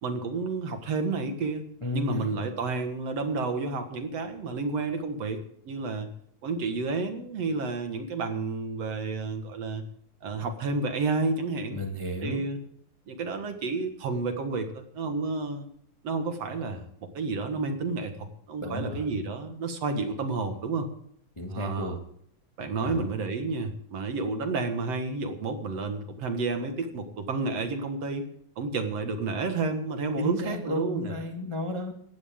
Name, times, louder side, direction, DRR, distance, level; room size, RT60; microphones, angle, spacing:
voice 1, 0.0-1.6 1.9-6.1 6.4-9.9 10.2-11.8 12.2-12.6 13.1-15.7 16.0-20.9 21.5-22.0 22.6-28.3 28.6-31.1, right 3 dB, 60° right, 6 dB, 2.7 m, -30 dB
voice 2, 1.8-2.4 11.7-12.4 18.6-19.1 21.4-22.0 22.8-23.0 30.2-31.9, left 1 dB, 15° left, 2 dB, 1.4 m, -33 dB
18.0 x 15.0 x 3.7 m, 0.66 s
omnidirectional pair, 3.4 m